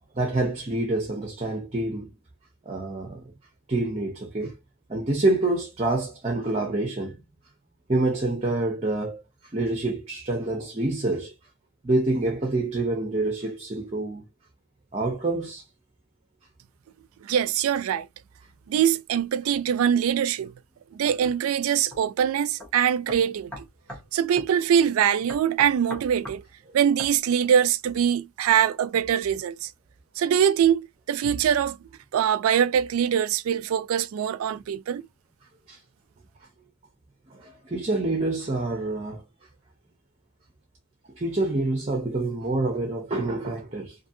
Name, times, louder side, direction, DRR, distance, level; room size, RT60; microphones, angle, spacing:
voice 1, 0.2-2.1 2.7-3.2 3.7-4.5 4.9-7.2 7.9-9.2 9.5-11.3 11.8-14.2 14.9-15.6 35.7-35.8 37.3-39.2 41.2-44.0, right 2 dB, 30° right, 0.6 m, -27 dB
voice 2, 17.2-18.1 18.7-20.5 20.9-23.6 24.1-26.4 26.7-29.7 30.2-31.8 32.1-35.0, right 8 dB, 90° right, 0.3 m, -23 dB
sound 1, 21.9-22.0 22.6-22.7 23.1-24.1 24.4-24.5 25.3-26.4 27.0-27.2, left 1 dB, 5° left, 0.9 m, -39 dB
2.6 x 2.6 x 2.6 m
head